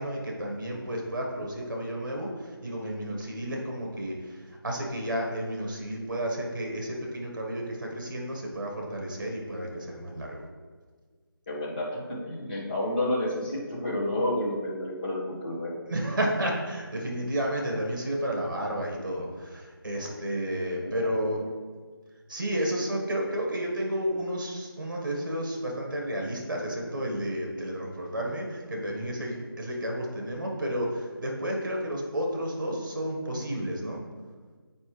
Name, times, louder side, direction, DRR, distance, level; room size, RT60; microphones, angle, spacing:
voice 1, 0.0-10.4 15.9-21.4 22.3-34.0, equal, 55° right, 0 dB, 1.6 m, -31 dB
voice 2, 11.5-15.7 20.0-20.4 20.7-21.4, left 1 dB, 25° left, -8 dB, 1.7 m, -31 dB
8.4 x 5.2 x 3.3 m, 1.5 s
figure-of-eight pair, 170°, 12 cm